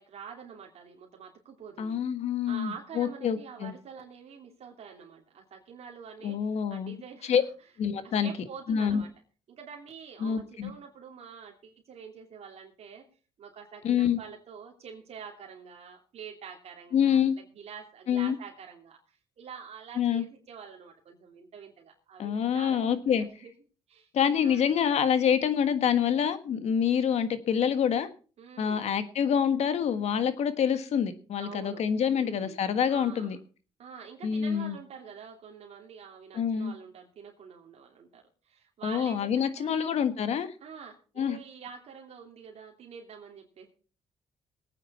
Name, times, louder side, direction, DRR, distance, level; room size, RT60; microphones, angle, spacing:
voice 1, 0.0-2.0 2.5-7.4 8.0-9.1 9.5-13.1 13.4-23.5 23.9-24.1 24.4-24.7 28.4-28.9 31.4-31.8 32.1-32.6 32.9-33.4 33.8-40.0 40.6-43.7, right 6 dB, 60° right, 1 dB, 2.9 m, -46 dB
voice 2, 1.8-3.7 6.2-7.0 7.3-7.4 7.8-8.3 8.7-9.0 10.2-10.7 13.8-14.2 16.9-17.3 18.1-18.4 20.0-20.2 22.2-23.2 24.1-28.1 28.6-33.4 34.2-34.8 36.3-36.7 38.8-40.5 41.2-41.4, left 8 dB, 65° left, 11 dB, 1.5 m, -26 dB
20.0 x 9.0 x 4.2 m, 0.38 s
cardioid pair, 100°, 12 cm